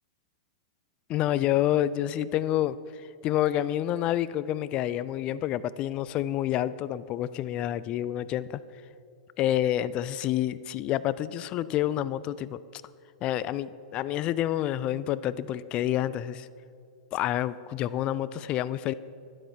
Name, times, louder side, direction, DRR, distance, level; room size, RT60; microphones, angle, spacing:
voice 1, 1.1-8.6 9.4-12.8 13.2-16.5 17.1-18.9, left 12 dB, 35° left, 17 dB, 0.4 m, -28 dB
12.5 x 9.2 x 4.7 m, 2.5 s
figure-of-eight pair, 100°, 3 cm